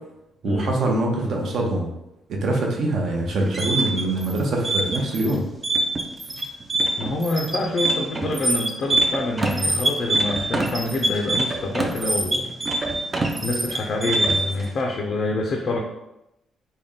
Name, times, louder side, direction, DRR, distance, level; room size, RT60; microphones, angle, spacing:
voice 1, 0.4-1.9 2.3-5.4, right 2 dB, 55° right, 0 dB, 0.7 m, -24 dB
sound 1, 3.3-14.6, right 2 dB, 20° right, 0.4 m, -24 dB
voice 2, 7.0-12.6 13.1-15.8, left 2 dB, 45° left, 0 dB, 0.4 m, -26 dB
3.7 x 2.2 x 3.6 m, 0.88 s
cardioid pair, 150°, 0 cm